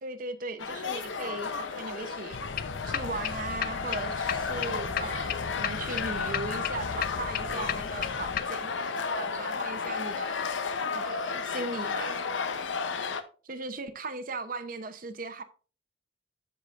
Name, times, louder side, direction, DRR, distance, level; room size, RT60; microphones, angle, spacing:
voice 1, 0.0-2.4 2.9-10.5 10.9-12.2 13.4-15.4, right 3 dB, 45° right, 0.7 m, -38 dB
sound 1, 0.6-13.2, left 5 dB, 85° left, 0.7 m, -33 dB
sound 2, 2.3-8.4, left 7 dB, 50° left, 0.5 m, -35 dB
13.0 x 4.9 x 2.5 m
head